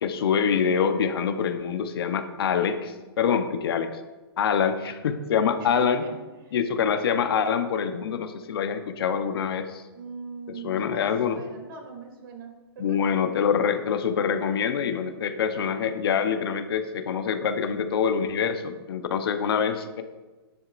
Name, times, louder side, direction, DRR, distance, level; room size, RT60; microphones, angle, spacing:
voice 1, 0.0-4.0 4.4-6.0 6.5-9.8 10.6-11.4 12.8-20.0, left 7 dB, 65° left, 9 dB, 0.9 m, -25 dB
voice 2, 5.6-6.6 9.9-13.1, right 4 dB, 60° right, 1 dB, 2.8 m, -41 dB
10.5 x 10.5 x 2.5 m, 1.2 s
hypercardioid pair, 155°, 13 cm